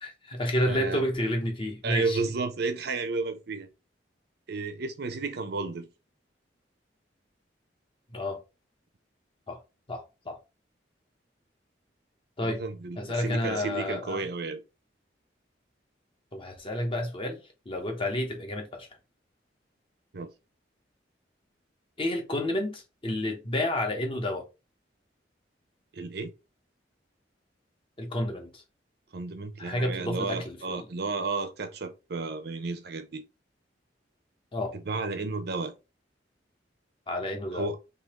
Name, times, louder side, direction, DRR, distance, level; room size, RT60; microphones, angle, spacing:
voice 1, 0.0-2.2 8.1-8.4 9.5-9.6 9.9-10.4 12.4-12.6 13.0-14.2 16.3-18.9 22.0-24.5 28.0-28.6 29.6-30.9 34.5-34.8 37.1-37.7, left 1 dB, 30° left, 0.9 m, -30 dB
voice 2, 0.6-1.0 1.8-3.7 4.5-5.9 12.4-14.6 20.1-20.3 25.9-26.3 29.1-33.3 34.7-35.8 37.5-37.8, right 3 dB, 65° right, 0.6 m, -32 dB
3.6 x 2.8 x 2.9 m
head